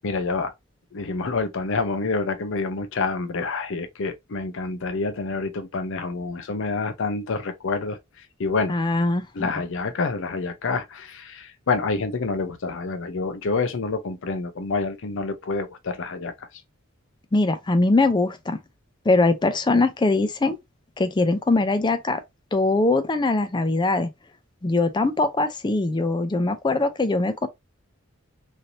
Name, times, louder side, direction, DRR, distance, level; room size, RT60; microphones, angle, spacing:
voice 1, 0.0-0.5 0.9-8.0 8.4-8.8 9.3-16.5, left 4 dB, 65° left, 0.6 m, -27 dB
voice 2, 8.7-9.5 17.3-18.6 19.1-20.6 21.0-22.2 22.5-24.1 24.6-27.5, left 2 dB, 20° left, 0.4 m, -22 dB
3.2 x 2.6 x 2.6 m
head